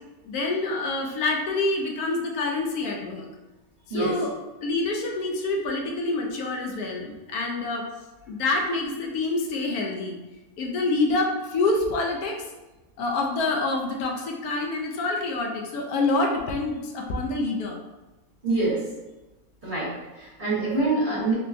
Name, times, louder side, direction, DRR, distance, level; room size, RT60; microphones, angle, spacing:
voice 1, 0.2-3.3 3.9-4.3 4.6-7.9 8.3-10.2 10.6-12.4 13.0-17.8, left 2 dB, 80° left, 1 dB, 1.1 m, -27 dB
voice 2, 18.4-18.8 19.6-21.3, right 3 dB, 40° right, -8 dB, 1.0 m, -25 dB
3.7 x 2.2 x 2.4 m, 1.1 s
omnidirectional pair, 1.6 m